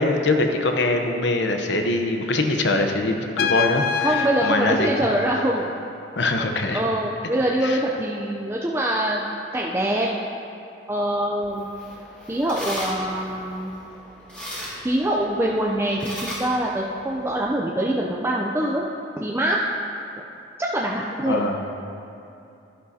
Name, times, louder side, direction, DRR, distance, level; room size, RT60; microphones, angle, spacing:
voice 1, 0.0-5.2 6.2-6.8 7.6-7.8 21.3-21.6, left 2 dB, 70° left, 4 dB, 0.8 m, -23 dB
Trumpet, 3.4-6.0, left 7 dB, 55° left, 0.4 m, -27 dB
voice 2, 4.0-5.7 6.7-10.1 10.9-11.7 12.3-13.7 14.8-18.8 19.2-19.6 20.6-21.4, right 1 dB, 15° right, -2 dB, 0.4 m, -24 dB
sound 1, 11.4-17.5, equal, 5° left, 2.0 m, -37 dB
11.5 x 11.0 x 2.8 m, 2.7 s
head